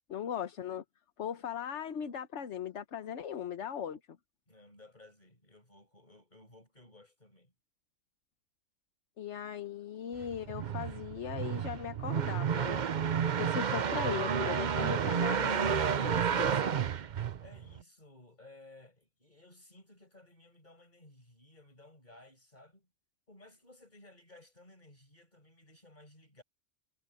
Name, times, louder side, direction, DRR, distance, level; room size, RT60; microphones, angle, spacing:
voice 1, 0.1-0.8 1.2-4.0 9.2-12.8 13.4-15.7 16.0-16.7, left 8 dB, 70° left, 1.2 m, -38 dB
voice 2, 4.5-7.5 17.4-22.9 23.3-26.4, left 2 dB, 35° left, 5.6 m, -58 dB
sound 1, 10.2-17.8, right 7 dB, 45° right, 0.7 m, -31 dB
omnidirectional pair, 1.3 m